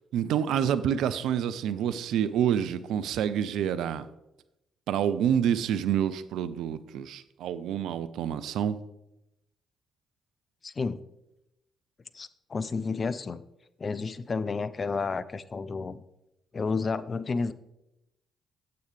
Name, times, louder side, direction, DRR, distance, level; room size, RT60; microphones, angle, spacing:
voice 1, 0.1-4.1 4.9-8.8, right 9 dB, 65° right, 14 dB, 0.4 m, -28 dB
voice 2, 10.6-11.0 12.1-13.4 13.8-16.0 16.5-17.5, left 4 dB, 40° left, 15 dB, 0.5 m, -31 dB
9.3 x 7.9 x 3.4 m, 0.87 s
figure-of-eight pair, 40°, 0 cm